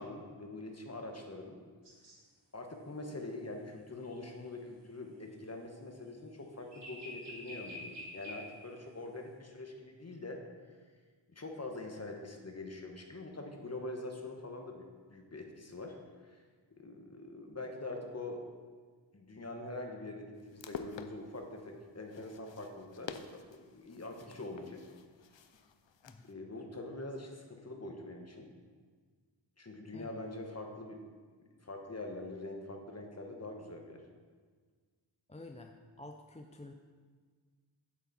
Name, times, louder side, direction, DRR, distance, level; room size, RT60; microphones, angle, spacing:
voice 1, 0.0-1.6 2.5-10.4 11.3-14.8 15.1-16.0 16.2-16.4 16.8-18.5 19.1-24.8 26.2-28.5 29.6-31.0 31.6-34.0, left 2 dB, 30° left, 3 dB, 1.2 m, -44 dB
sound 1, 1.8-2.2 6.7-8.5, left 1 dB, 55° right, 2.8 m, -46 dB
sound 2, 20.4-26.3, left 6 dB, 65° left, 0.6 m, -49 dB
voice 2, 35.3-36.7, left 2 dB, 15° left, 4 dB, 0.4 m, -50 dB
8.3 x 8.1 x 4.1 m, 1.6 s
wide cardioid pair, 90°, 49 cm